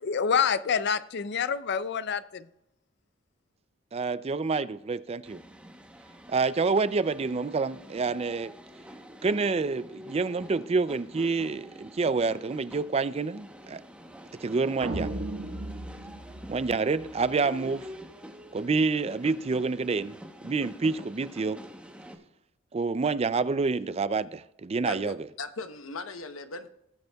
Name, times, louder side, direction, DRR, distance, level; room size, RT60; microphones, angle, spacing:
voice 1, 0.0-2.5, left 6 dB, 55° left, 0.5 m, -27 dB
voice 2, 3.9-5.4 6.3-8.5 9.2-13.8 14.4-15.2 16.5-17.9 18.5-20.2 20.4-21.6 22.7-25.2, right 4 dB, 30° right, 0.4 m, -28 dB
sound 1, 5.2-22.2, equal, 5° right, 0.9 m, -47 dB
sound 2, 14.8-17.3, right 1 dB, 65° right, 1.5 m, -36 dB
voice 3, 24.8-26.7, left 3 dB, 90° left, 0.9 m, -38 dB
17.5 x 7.9 x 2.3 m
head